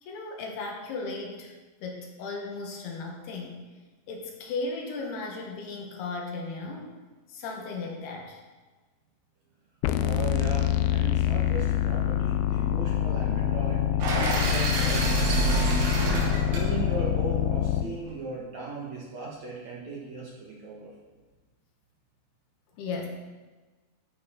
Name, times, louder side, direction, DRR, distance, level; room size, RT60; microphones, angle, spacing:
voice 1, 0.0-1.5 1.8-3.6 4.1-6.9 7.3-8.4 22.8-23.1, left 3 dB, 70° left, 1 dB, 3.3 m, -36 dB
sound 1, 9.8-17.8, left 11 dB, 90° left, 2.1 m, -25 dB
voice 2, 10.0-13.9 14.3-15.9 16.5-20.9, right 4 dB, 55° right, -5 dB, 2.4 m, -37 dB
sound 2, 14.0-18.0, right 3 dB, 90° right, 5.2 m, -29 dB
14.0 x 9.5 x 3.9 m, 1.3 s
omnidirectional pair, 5.0 m